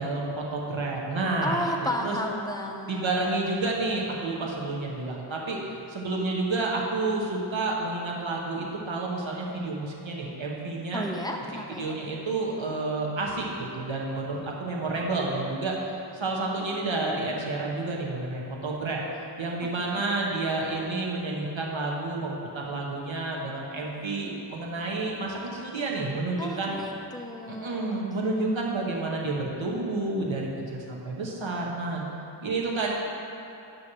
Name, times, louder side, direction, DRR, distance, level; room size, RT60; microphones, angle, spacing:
voice 1, 0.0-2.2 2.9-5.6 5.9-11.0 11.7-15.8 16.1-26.8 27.5-32.0 32.4-32.9, right 2 dB, 70° right, -2 dB, 1.2 m, -30 dB
voice 2, 1.4-3.4 10.9-12.0 12.7-12.8 16.6-17.4 19.8-20.1 26.4-28.3, left 1 dB, 10° left, 2 dB, 0.6 m, -34 dB
9.2 x 3.1 x 6.1 m, 2.8 s
wide cardioid pair, 100°, 48 cm